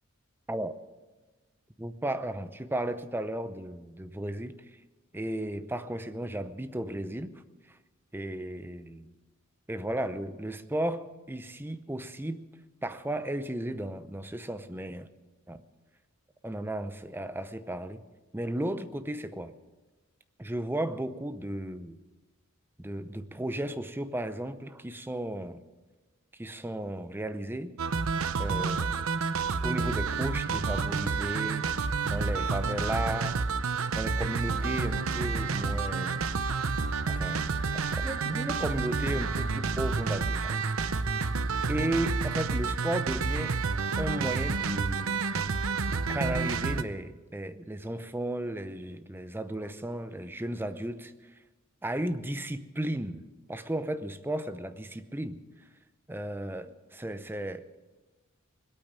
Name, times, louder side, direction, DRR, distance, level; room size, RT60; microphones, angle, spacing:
voice 1, 1.8-4.6 5.1-7.4 8.1-9.1 9.7-12.5 12.8-15.1 15.5-15.6 16.4-18.0 18.3-19.5 20.4-22.0 22.8-25.6 26.3-27.7 28.4-29.1 29.6-31.7 32.0-33.4 33.9-36.3 37.1-37.4 37.7-40.6 41.7-43.6 44.0-45.2 45.9-51.1 51.8-55.4 56.1-57.7, right 1 dB, 10° right, 0.6 m, -34 dB
sound 1, 27.8-46.8, right 4 dB, 75° right, 0.7 m, -29 dB
20.5 x 8.9 x 7.4 m
head